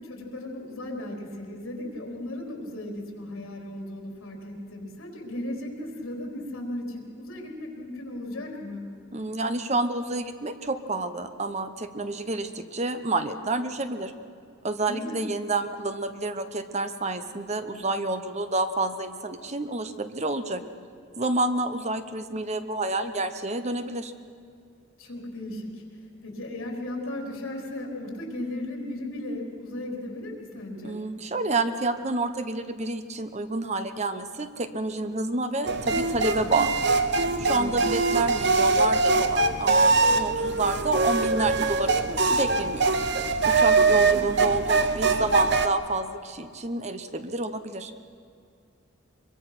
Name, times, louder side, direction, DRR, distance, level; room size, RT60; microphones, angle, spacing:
voice 1, 0.0-8.9 14.9-15.3 25.0-25.8 26.2-31.0 37.4-37.9, left 1 dB, 85° left, 0 dB, 4.2 m, -36 dB
voice 2, 9.1-14.1 14.6-20.6 21.2-24.1 30.8-36.8 37.4-42.9 43.4-47.9, right 2 dB, 35° right, 9 dB, 0.9 m, -29 dB
sound 1, 35.7-45.7, right 3 dB, 55° right, 0.9 m, -23 dB
24.0 x 23.0 x 6.0 m, 2.3 s
head